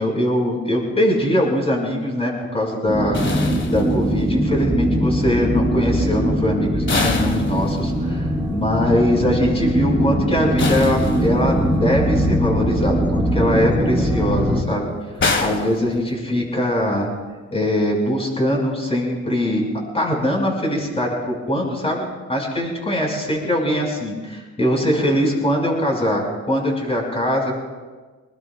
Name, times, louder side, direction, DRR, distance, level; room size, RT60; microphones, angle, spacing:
voice 1, 0.0-3.2 3.7-14.9 15.4-17.1 17.5-19.6 19.9-27.5, left 1 dB, 20° left, -1 dB, 5.7 m, -22 dB
sound 1, 2.9-14.6, equal, 5° right, 4.5 m, -21 dB
sound 2, 3.1-4.4 6.9-8.2 10.6-11.8 15.2-16.5, left 4 dB, 40° left, 1.6 m, -26 dB
25.0 x 20.5 x 2.4 m, 1.3 s
cardioid pair, 90°, 30 cm